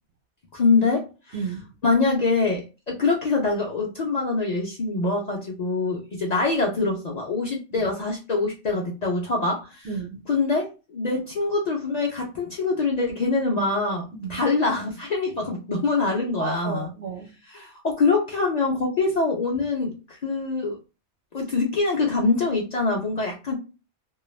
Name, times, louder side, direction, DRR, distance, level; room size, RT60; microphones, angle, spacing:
voice 1, 0.5-1.1 1.8-9.9 10.3-16.9 17.5-20.8 21.3-23.5, left 3 dB, 50° left, 0.6 m, -24 dB
voice 2, 1.3-1.6 9.8-10.2 14.2-14.4 16.4-17.3, right 5 dB, 70° right, 0.8 m, -32 dB
2.3 x 2.1 x 3.1 m
omnidirectional pair, 1.2 m